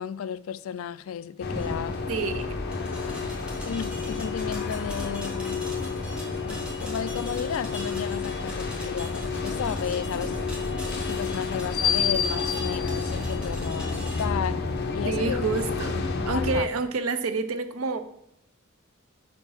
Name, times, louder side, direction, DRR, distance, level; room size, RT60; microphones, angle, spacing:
voice 1, 0.0-2.0 3.7-5.7 6.5-10.4 10.7-14.7 14.9-15.4 16.3-16.7, left 8 dB, 75° left, 0.3 m, -33 dB
sound 1, 1.4-16.6, left 4 dB, 55° left, 0.8 m, -30 dB
sound 2, 1.5-14.2, equal, 5° right, 1.6 m, -42 dB
voice 2, 2.1-2.5 15.0-18.0, right 4 dB, 85° right, 0.7 m, -28 dB
6.3 x 4.5 x 5.5 m
head